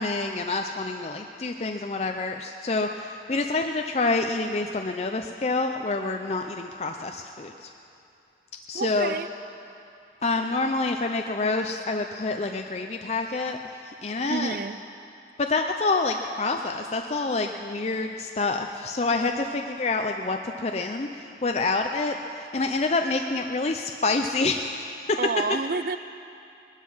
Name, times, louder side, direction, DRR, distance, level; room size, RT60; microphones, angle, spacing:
voice 1, 0.0-7.7 8.7-9.1 10.2-13.6 13.8-14.6 15.4-25.2, left 3 dB, 35° left, 4 dB, 0.5 m, -27 dB
voice 2, 8.7-9.3 14.3-14.8 25.2-26.0, right 4 dB, 55° right, 13 dB, 0.4 m, -29 dB
20.5 x 12.0 x 5.6 m, 2.6 s
head